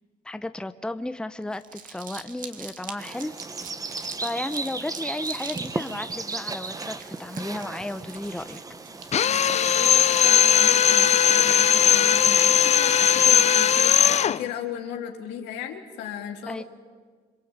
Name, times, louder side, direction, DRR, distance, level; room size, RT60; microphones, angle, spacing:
voice 1, 0.2-3.3 4.2-8.6 16.5-16.6, left 1 dB, 5° left, 11 dB, 0.9 m, -33 dB
Crumpling crinkling, 1.4-13.2, right 6 dB, 55° right, 2.3 m, -45 dB
sound 1, 3.0-13.5, right 3 dB, 20° right, 1.2 m, -36 dB
Drill, 9.1-14.4, left 9 dB, 40° left, 0.7 m, -19 dB
voice 2, 9.2-16.6, left 9 dB, 90° left, 3 dB, 3.3 m, -36 dB
27.0 x 23.0 x 8.9 m, 1.5 s
cardioid pair, 110°, 17 cm